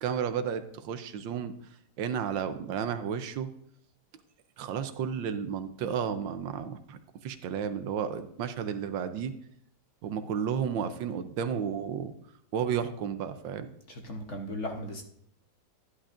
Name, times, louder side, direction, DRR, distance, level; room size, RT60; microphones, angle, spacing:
voice 1, 0.0-1.5 2.0-3.5 4.6-9.3 10.0-12.1 12.5-13.7, right 7 dB, 85° right, 10 dB, 1.5 m, -32 dB
voice 2, 13.9-15.0, left 1 dB, 45° left, 3 dB, 1.1 m, -37 dB
11.5 x 11.0 x 2.5 m, 0.69 s
omnidirectional pair, 2.0 m